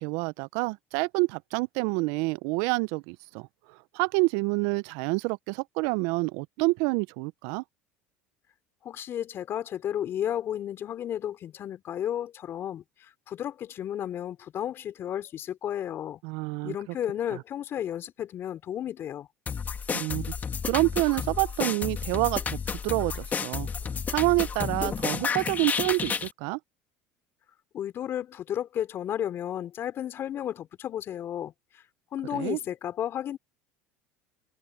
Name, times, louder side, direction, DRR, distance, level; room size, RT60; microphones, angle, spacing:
voice 1, 0.0-3.5 3.9-7.6 16.2-16.7 17.3-17.4 19.9-20.3 20.6-23.7 24.1-26.6 32.3-32.6, right 26 dB, 70° right, 0.7 m, -28 dB
voice 2, 8.8-16.2 16.6-19.3 27.7-31.8 32.1-33.4, left 10 dB, 45° left, 3.3 m, -33 dB
sound 1, 19.5-26.3, left 6 dB, 30° left, 1.9 m, -31 dB
hypercardioid pair, 80°, 5 cm